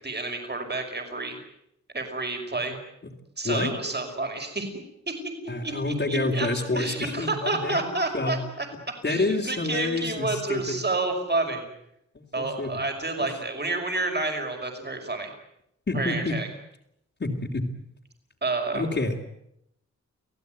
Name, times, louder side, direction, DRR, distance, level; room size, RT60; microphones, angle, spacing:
voice 1, 0.0-1.4 1.9-2.8 3.4-4.7 5.1-5.2 5.6-6.5 6.7-8.7 9.0-11.7 12.3-15.3 15.9-16.5 18.4-18.8, right 2 dB, 35° right, 4 dB, 5.7 m, -29 dB
voice 2, 5.5-7.8 8.1-8.4 9.0-10.8 12.1-12.7 13.2-13.3 15.9-16.4 17.2-17.6 18.7-19.1, left 2 dB, 40° left, -3 dB, 3.2 m, -28 dB
29.0 x 17.5 x 9.5 m, 0.79 s
wide cardioid pair, 95°, 29 cm